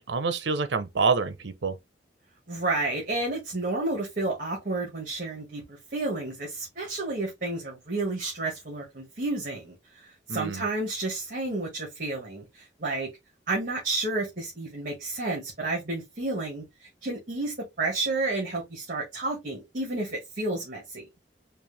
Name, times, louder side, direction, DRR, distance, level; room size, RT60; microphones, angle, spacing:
voice 1, 0.0-1.7 10.3-10.6, right 4 dB, 85° right, 0.7 m, -27 dB
voice 2, 2.5-13.1 13.5-21.1, right 2 dB, 50° right, 1.7 m, -31 dB
4.5 x 2.5 x 3.3 m
head